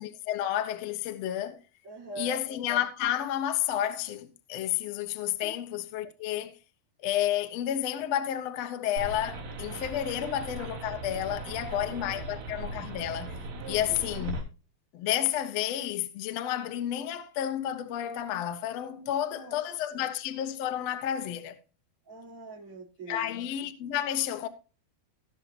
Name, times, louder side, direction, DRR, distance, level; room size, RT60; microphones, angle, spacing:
voice 1, 0.0-1.6 2.2-6.6 7.0-13.4 13.7-14.4 14.9-21.6 23.1-24.5, left 11 dB, 85° left, 1.4 m, -31 dB
voice 2, 1.8-2.4 5.4-5.5 10.2-10.6 11.4-12.4 13.5-14.1 19.0-19.7 19.9-20.1 22.0-23.3, right 2 dB, 30° right, 4.8 m, -44 dB
sound 1, 9.0-14.4, right 2 dB, 75° right, 5.4 m, -38 dB
18.5 x 6.9 x 2.9 m
omnidirectional pair, 4.9 m